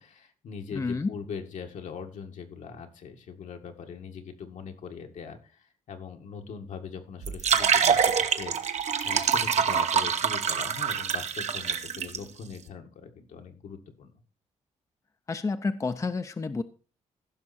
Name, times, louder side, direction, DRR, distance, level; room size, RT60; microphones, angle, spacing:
voice 1, 0.0-14.1, left 6 dB, 75° left, 4 dB, 1.8 m, -41 dB
voice 2, 0.7-1.1 15.3-16.6, left 4 dB, 25° left, 10 dB, 0.6 m, -29 dB
sound 1, 7.2-12.2, right 7 dB, 60° right, 1.0 m, -25 dB
15.0 x 6.0 x 4.2 m, 0.36 s
cardioid pair, 90°, 13 cm